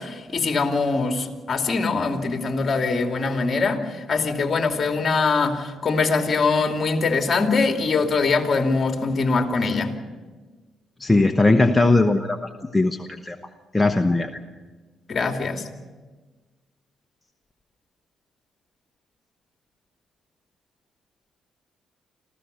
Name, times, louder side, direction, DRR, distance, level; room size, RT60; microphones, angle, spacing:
voice 1, 0.0-9.9 15.1-15.7, left 4 dB, 40° left, 4 dB, 2.7 m, -23 dB
voice 2, 11.0-13.4 13.7-14.4, left 2 dB, 15° left, 5 dB, 1.0 m, -19 dB
26.5 x 15.5 x 6.8 m, 1.3 s
cardioid pair, 90°, 0 cm